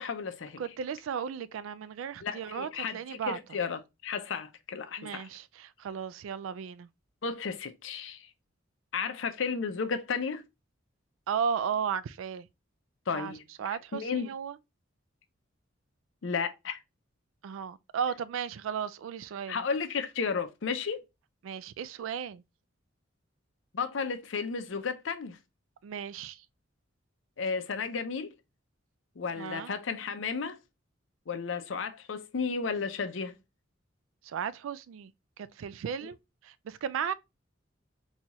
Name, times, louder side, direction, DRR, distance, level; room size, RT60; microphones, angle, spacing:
voice 1, 0.0-0.6 2.2-5.3 7.2-8.3 8.9-10.5 13.1-13.4 13.7-14.3 16.2-16.8 19.5-21.0 23.7-25.4 27.4-28.3 29.2-30.6 31.3-33.3, left 5 dB, 70° left, 0.5 m, -33 dB
voice 2, 0.6-3.4 5.0-6.9 11.3-12.5 13.1-14.6 17.4-19.6 21.4-22.4 25.8-26.4 29.4-29.7 34.2-35.1 35.4-36.2 36.4-37.1, right 7 dB, 85° right, 0.3 m, -35 dB
4.1 x 2.3 x 2.9 m
head